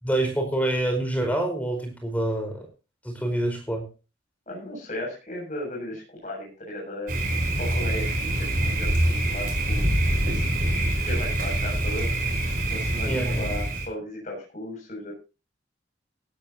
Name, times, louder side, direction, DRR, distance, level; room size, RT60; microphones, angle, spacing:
voice 1, 0.0-2.7 3.0-3.9 13.0-13.5, right 1 dB, 10° left, 3 dB, 4.6 m, -26 dB
voice 2, 4.5-7.2 7.6-9.9 10.2-10.6 10.9-12.1 12.7-15.1, left 1 dB, 40° left, -2 dB, 7.3 m, -36 dB
Thunder, 7.1-13.9, right 1 dB, 45° right, 5.3 m, -25 dB
17.0 x 13.5 x 2.9 m, 0.32 s
head